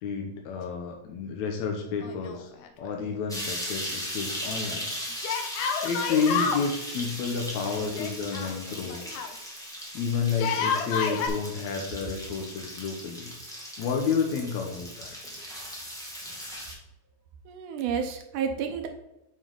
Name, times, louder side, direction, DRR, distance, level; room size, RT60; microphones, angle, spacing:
voice 1, 0.0-2.5 2.8-4.9 5.8-9.0 9.9-13.3 13.8-15.2, left 5 dB, 70° left, 1 dB, 1.8 m, -30 dB
Yell, 2.0-2.9 3.1-3.2 5.2-6.7 7.9-9.3 10.3-11.3, left 6 dB, 90° left, 1.4 m, -29 dB
sound 1, 3.3-16.7, equal, 5° left, 0.4 m, -38 dB
voice 2, 17.5-18.9, right 7 dB, 75° right, 5 dB, 2.1 m, -30 dB
9.1 x 4.7 x 3.9 m, 0.92 s
omnidirectional pair, 4.2 m